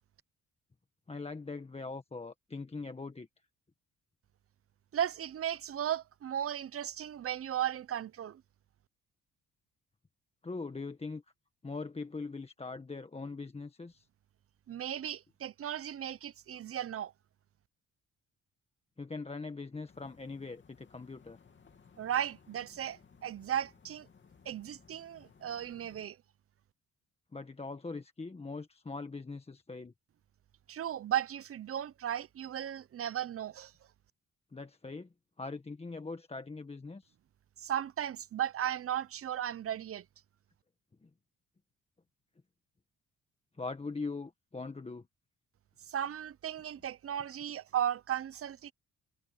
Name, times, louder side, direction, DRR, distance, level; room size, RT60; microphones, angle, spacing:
voice 1, 1.1-3.3 10.4-11.2 11.6-14.1 19.0-21.4 27.3-29.9 34.5-35.1 35.4-37.1 41.0-41.1 43.6-45.0, left 3 dB, 20° left, 1.4 m, -41 dB
voice 2, 4.9-8.4 14.7-17.1 22.0-24.1 24.5-26.2 30.7-33.7 37.6-40.0 45.9-48.7, right 10 dB, 50° right, 0.8 m, -35 dB
sound 1, 19.9-26.1, left 6 dB, 40° left, 3.0 m, -61 dB
cardioid pair, 90°, 30 cm